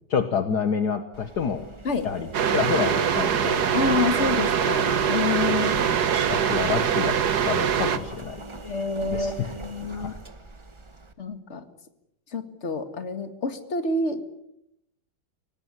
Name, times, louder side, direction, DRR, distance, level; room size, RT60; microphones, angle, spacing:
voice 1, 0.1-1.7 2.0-3.7 5.5-5.6 5.9-6.0 6.3-7.2 7.5-8.4 9.1-9.3 9.9-10.2, left 7 dB, 60° left, 9 dB, 1.8 m, -28 dB
Engine, 1.1-11.1, right 2 dB, 20° right, 1.1 m, -39 dB
sound 1, 2.3-8.0, right 8 dB, 55° right, 1.7 m, -23 dB
voice 2, 3.7-5.9 8.6-10.1 11.2-11.7 12.3-14.2, left 3 dB, 35° left, 9 dB, 2.2 m, -28 dB
24.5 x 19.0 x 9.7 m, 0.82 s
omnidirectional pair, 2.1 m